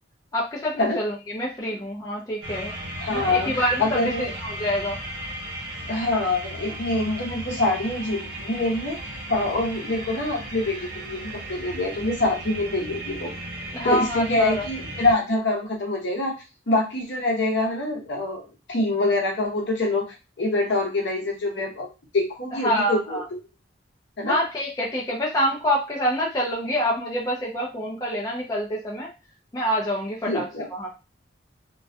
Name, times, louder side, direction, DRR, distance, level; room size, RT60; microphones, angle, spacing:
voice 1, 0.3-2.7 3.1-5.0 13.7-14.7 22.6-23.2 24.3-29.1 29.5-30.5 30.7-30.9, equal, 20° left, -4 dB, 0.4 m, -26 dB
sound 1, 2.4-15.1, right 1 dB, 60° right, 0.7 m, -36 dB
voice 2, 3.0-4.3 5.9-9.0 9.3-13.3 13.8-16.3 16.7-18.4 18.7-20.1 20.4-21.9 22.1-23.4 24.2-24.4 30.3-30.7, left 2 dB, 65° left, 0 dB, 0.7 m, -25 dB
2.2 x 2.1 x 2.6 m, 0.30 s
head